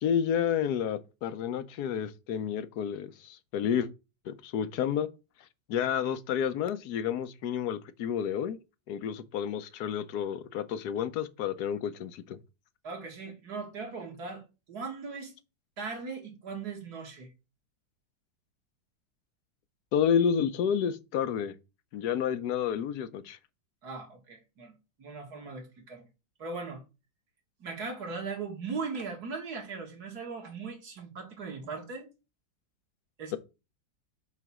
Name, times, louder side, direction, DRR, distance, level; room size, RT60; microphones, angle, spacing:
voice 1, 0.0-3.9 4.3-5.1 5.7-8.6 8.9-12.4 19.9-21.5 21.9-23.4, left 8 dB, 65° left, 1.1 m, -30 dB
voice 2, 12.8-15.3 15.8-17.3 23.8-24.7 25.0-26.0 26.4-26.8 27.6-32.1 33.2-33.4, right 4 dB, 60° right, 2.2 m, -39 dB
7.7 x 3.3 x 6.0 m
omnidirectional pair, 2.0 m